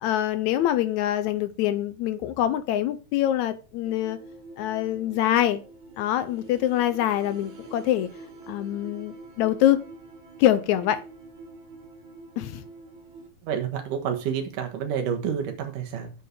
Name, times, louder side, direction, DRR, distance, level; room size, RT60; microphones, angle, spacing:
voice 1, 0.0-4.2 4.6-5.6 6.0-8.1 8.5-9.8 10.4-11.0 12.4-12.6, left 12 dB, 75° left, 1.8 m, -24 dB
sound 1, 3.8-13.3, right 3 dB, 65° right, 3.1 m, -46 dB
voice 2, 13.4-16.2, right 8 dB, 85° right, 3.0 m, -29 dB
7.8 x 5.5 x 6.4 m
omnidirectional pair, 3.7 m